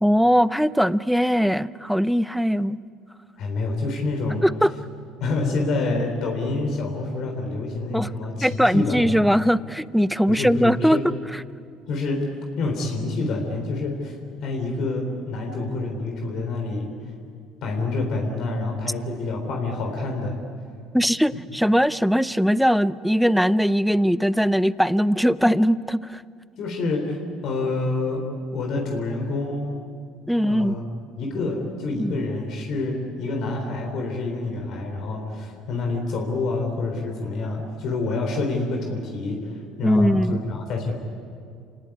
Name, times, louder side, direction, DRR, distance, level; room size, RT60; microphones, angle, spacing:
voice 1, 0.0-2.8 4.4-4.7 7.9-8.1 8.4-11.0 20.9-26.2 30.3-30.8 32.0-32.2 39.8-40.4, equal, ahead, 16 dB, 0.7 m, -20 dB
voice 2, 3.4-4.4 5.2-9.2 10.3-11.0 11.9-12.2 12.6-16.9 17.6-20.4 21.3-21.4 26.6-29.7 30.4-30.9 31.2-40.9, left 3 dB, 60° left, 2 dB, 3.9 m, -27 dB
27.5 x 18.0 x 9.6 m, 2.3 s
supercardioid pair, 80°, 0 cm